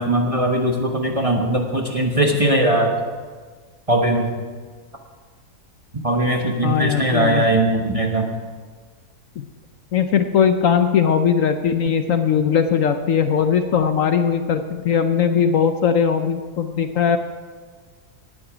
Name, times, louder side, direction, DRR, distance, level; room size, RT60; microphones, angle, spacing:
voice 1, 0.0-2.9 3.9-4.3 6.0-8.3, right 1 dB, 25° right, 2 dB, 1.1 m, -20 dB
voice 2, 6.6-7.4 9.4-9.5 9.9-17.2, left 7 dB, 65° left, 8 dB, 1.0 m, -19 dB
18.5 x 8.9 x 5.0 m, 1.5 s
omnidirectional pair, 1.7 m